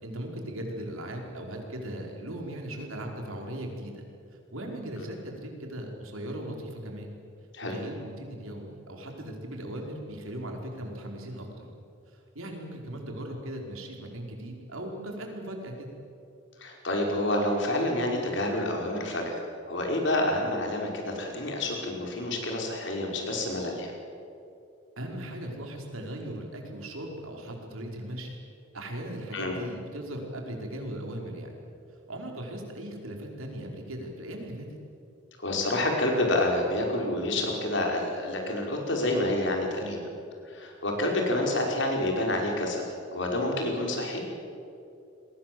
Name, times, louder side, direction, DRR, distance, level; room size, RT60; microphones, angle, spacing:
voice 1, 0.0-4.1 4.5-7.1 7.7-11.7 12.3-15.9 25.0-28.4 28.7-31.5 32.1-34.7 39.8-40.0, right 1 dB, 85° right, 1 dB, 5.0 m, -38 dB
voice 2, 16.6-23.9 29.3-29.5 35.4-40.0 40.4-42.8 43.1-44.3, left 1 dB, 60° left, 0 dB, 5.4 m, -28 dB
28.5 x 22.0 x 7.9 m, 2.6 s
head